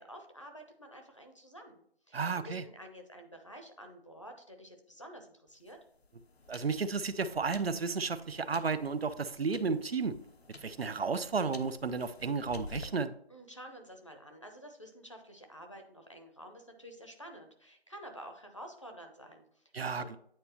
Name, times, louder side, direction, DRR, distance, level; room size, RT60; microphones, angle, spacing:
voice 1, 0.0-2.2 2.4-5.8 13.3-19.6 20.0-20.2, equal, 30° left, 4 dB, 0.7 m, -50 dB
voice 2, 2.1-2.6 6.5-10.2 10.6-13.1 19.7-20.2, right 4 dB, 70° right, 14 dB, 0.6 m, -33 dB
sound 1, 5.5-12.9, left 3 dB, 75° left, 0.8 m, -51 dB
8.9 x 4.3 x 2.8 m, 0.67 s
figure-of-eight pair, 170°, 32 cm